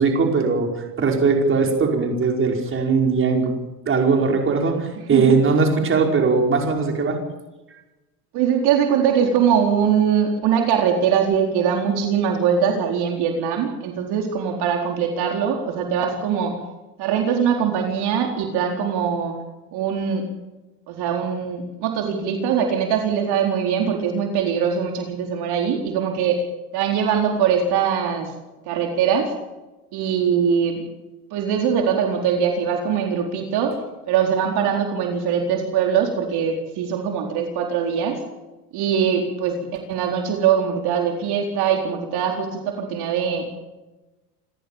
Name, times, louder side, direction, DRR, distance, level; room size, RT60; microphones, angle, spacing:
voice 1, 0.0-3.5 3.9-7.2, right 4 dB, 25° right, 2 dB, 5.2 m, -20 dB
voice 2, 8.3-16.5 17.0-19.3 19.7-20.2 20.9-26.4 26.7-28.3 28.7-29.3 29.9-30.8 31.3-33.7 34.1-38.2 38.7-43.4, right 7 dB, 50° right, 2 dB, 4.3 m, -22 dB
29.0 x 14.0 x 7.3 m, 1.1 s
supercardioid pair, 120°, 48 cm